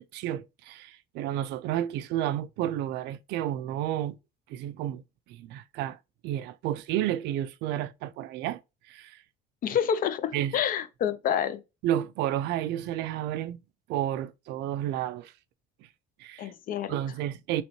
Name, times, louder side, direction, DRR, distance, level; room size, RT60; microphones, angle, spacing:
voice 1, 0.0-4.1 4.5-5.0 5.3-6.0 6.2-8.6 8.9-9.2 10.3-10.6 11.8-13.6 13.9-15.3 16.2-16.5 16.9-17.6, right 12 dB, 85° right, 0.4 m, -31 dB
voice 2, 9.6-11.6 16.4-17.0, left 8 dB, 55° left, 0.5 m, -28 dB
3.1 x 3.0 x 4.2 m
cardioid pair, 110°, 17 cm